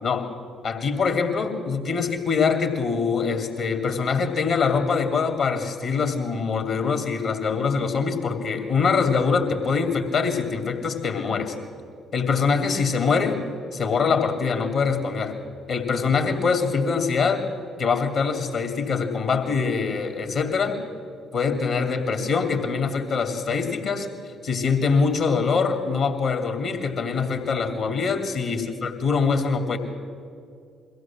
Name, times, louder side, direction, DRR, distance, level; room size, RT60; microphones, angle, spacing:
voice 1, 0.0-0.3 0.6-11.6 12.1-13.4 13.7-15.4 15.7-17.4 17.8-20.8 21.3-24.1 24.4-29.8, left 5 dB, 65° left, 6 dB, 2.6 m, -24 dB
23.0 x 16.0 x 7.4 m, 2.4 s
hypercardioid pair, 50°, 0 cm